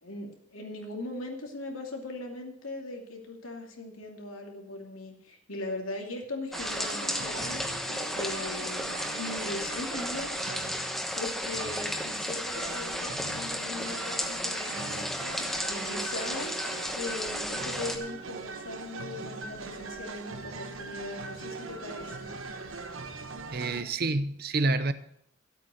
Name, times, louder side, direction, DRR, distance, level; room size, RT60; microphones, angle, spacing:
voice 1, 0.0-7.7 8.2-10.3 10.8-15.1 15.7-16.6 17.0-22.3, left 2 dB, 85° left, 2.6 m, -39 dB
sound 1, 6.5-18.0, equal, ahead, 1.0 m, -34 dB
sound 2, 6.5-23.8, right 3 dB, 80° right, 1.3 m, -41 dB
voice 2, 23.5-24.9, right 2 dB, 45° right, 0.7 m, -28 dB
13.0 x 8.3 x 6.4 m
head